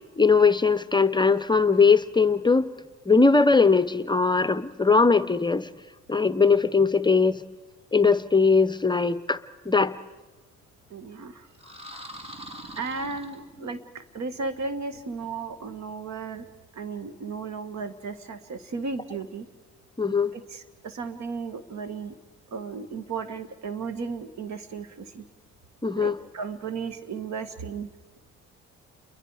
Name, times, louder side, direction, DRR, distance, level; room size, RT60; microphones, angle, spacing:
voice 1, 0.2-2.7 3.1-5.7 6.1-7.4 7.9-9.4 9.7-9.9 20.0-20.3 25.8-26.1, left 4 dB, 15° left, 13 dB, 0.7 m, -20 dB
voice 2, 10.9-11.5 12.8-16.4 16.7-19.5 20.3-22.1 22.5-25.2 26.0-27.9, right 4 dB, 65° right, 10 dB, 1.8 m, -35 dB
sound 1, 11.5-13.9, equal, 20° right, 2.7 m, -43 dB
29.5 x 23.0 x 4.9 m, 1.2 s
cardioid pair, 90°, 30 cm